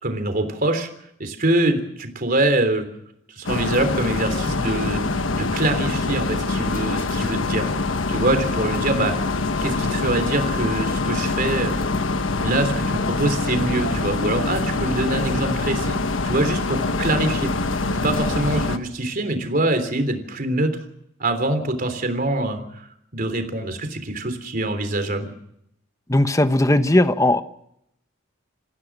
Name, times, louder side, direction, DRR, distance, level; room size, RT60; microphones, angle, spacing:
voice 1, 0.0-0.9 1.2-2.9 3.4-7.7 8.1-9.2 9.6-11.8 12.4-16.0 16.2-17.5 18.0-20.7 21.2-25.3, right 2 dB, 50° right, 7 dB, 3.5 m, -24 dB
sound 1, 3.4-18.8, left 3 dB, 85° left, 1.3 m, -24 dB
voice 2, 26.1-27.4, left 1 dB, 15° left, 10 dB, 1.1 m, -17 dB
28.5 x 15.5 x 6.1 m, 0.75 s
head